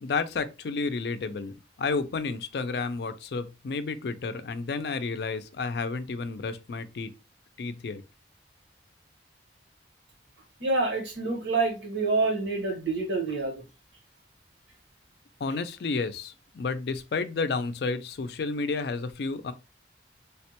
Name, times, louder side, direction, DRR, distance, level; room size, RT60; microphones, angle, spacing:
voice 1, 0.0-7.1 7.6-8.0 15.4-19.5, left 4 dB, 60° left, 0.4 m, -31 dB
voice 2, 10.6-13.6, right 3 dB, 80° right, 1.1 m, -27 dB
3.4 x 2.1 x 2.8 m
head